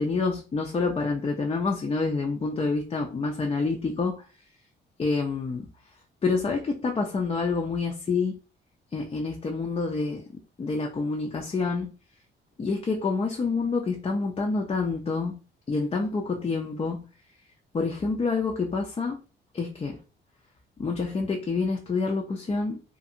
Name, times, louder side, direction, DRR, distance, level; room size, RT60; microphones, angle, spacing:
voice 1, 0.0-4.3 5.0-5.7 6.2-8.4 8.9-11.9 12.6-15.4 15.7-17.0 17.7-19.2 19.5-20.0 20.8-22.8, left 4 dB, 30° left, 0.5 m, -27 dB
2.5 x 2.5 x 2.7 m
cardioid pair, 90°, 20 cm